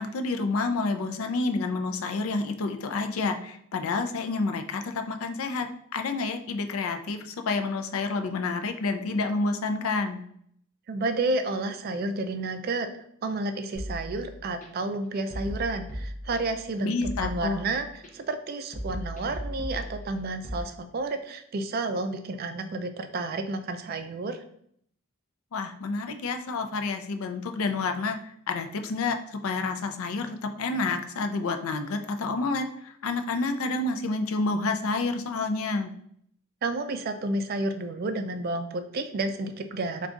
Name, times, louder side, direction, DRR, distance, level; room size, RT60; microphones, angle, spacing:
voice 1, 0.0-5.7 5.9-7.2 7.5-10.2 16.8-17.6 25.5-28.2 28.5-32.7 33.0-35.9, left 3 dB, 75° left, 7 dB, 0.4 m, -29 dB
voice 2, 10.9-12.9 13.2-24.4 36.6-40.1, right 2 dB, 45° right, 8 dB, 0.3 m, -31 dB
sound 1, 13.8-14.7 15.3-16.7 17.0-18.1 18.7-20.6, equal, 35° left, 0.7 m, -37 dB
3.6 x 2.3 x 3.7 m, 0.67 s
head